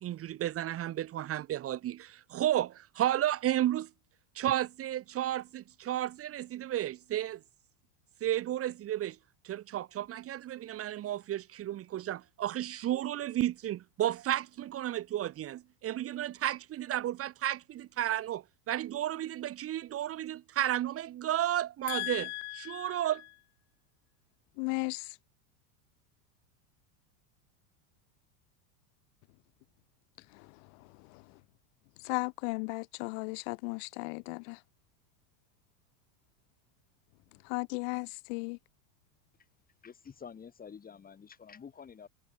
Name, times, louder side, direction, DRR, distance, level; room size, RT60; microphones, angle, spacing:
voice 1, 0.0-3.9 4.3-7.4 8.2-9.2 9.4-23.2, right 12 dB, 25° right, 2.3 m, -33 dB
voice 2, 21.9-22.9 24.6-25.1 32.0-34.6 37.5-38.6, left 35 dB, 55° left, 4.6 m, -35 dB
voice 3, 39.8-42.1, left 6 dB, 15° left, 7.9 m, -49 dB
supercardioid pair, 155°, 49 cm